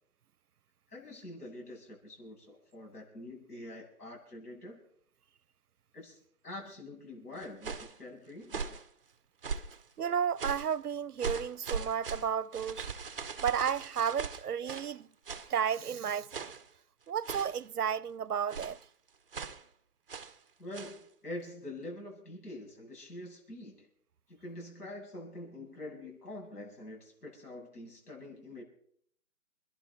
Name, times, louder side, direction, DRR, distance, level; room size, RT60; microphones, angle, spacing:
voice 1, 0.9-4.8 5.9-8.8 20.6-23.9 24.3-28.6, left 1 dB, 75° left, 8.0 m, -45 dB
sound 1, 7.4-8.0 8.4-8.9 9.4-9.8 10.4-10.8 11.2-14.9 15.3-15.5 16.3-16.7 17.2-17.7 18.5-18.8 19.3-19.6 20.1-20.4 20.7-21.0, right 5 dB, 35° right, 1.0 m, -39 dB
voice 2, 10.0-12.9 13.4-15.1 15.5-16.3 17.1-18.8, right 8 dB, 75° right, 0.8 m, -32 dB
28.0 x 11.5 x 4.2 m
hypercardioid pair, 160°, 46 cm